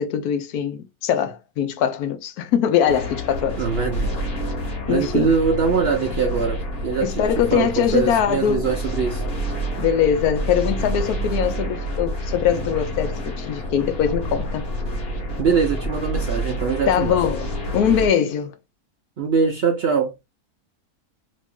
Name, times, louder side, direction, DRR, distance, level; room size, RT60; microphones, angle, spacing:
voice 1, 0.0-3.6 4.9-5.3 7.0-8.6 9.8-14.7 16.9-17.5 17.7-18.6, left 8 dB, 80° left, 1.1 m, -22 dB
sound 1, 2.9-18.1, equal, 45° left, 1.1 m, -28 dB
voice 2, 3.6-4.3 4.9-9.2 15.4-17.1 19.2-20.1, right 6 dB, 70° right, 0.6 m, -22 dB
3.0 x 2.6 x 3.5 m
omnidirectional pair, 1.6 m